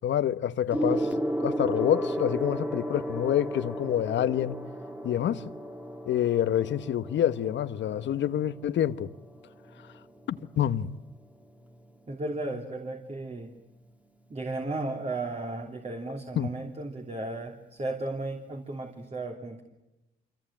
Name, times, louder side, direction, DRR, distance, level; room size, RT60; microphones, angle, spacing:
voice 1, 0.0-1.1 1.4-4.6 5.0-5.5 6.1-9.1 10.3-10.9 16.4-16.5, left 10 dB, 65° left, 1.2 m, -27 dB
Gong, 0.7-10.5 11.4-11.7, right 1 dB, 5° right, 2.3 m, -34 dB
voice 2, 12.1-13.5 14.3-19.6, right 2 dB, 30° right, 3.4 m, -35 dB
27.0 x 24.0 x 8.9 m
cardioid pair, 90°, 20 cm